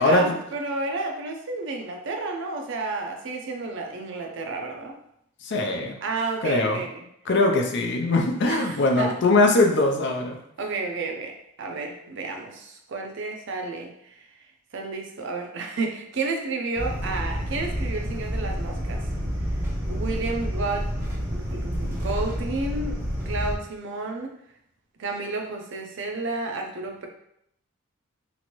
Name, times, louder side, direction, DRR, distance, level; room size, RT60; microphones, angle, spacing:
voice 1, 0.0-5.0 6.0-7.0 8.5-9.2 10.6-14.3 14.7-19.1 19.9-21.0 21.3-23.0 23.3-24.3 25.0-27.1, right 3 dB, 60° right, 3 dB, 0.5 m, -31 dB
voice 2, 5.4-5.9 6.4-6.8 7.3-10.4, left 2 dB, 55° left, 2 dB, 0.5 m, -21 dB
sound 1, 16.8-23.5, equal, 10° right, 0.6 m, -29 dB
3.0 x 2.6 x 2.9 m, 0.75 s
head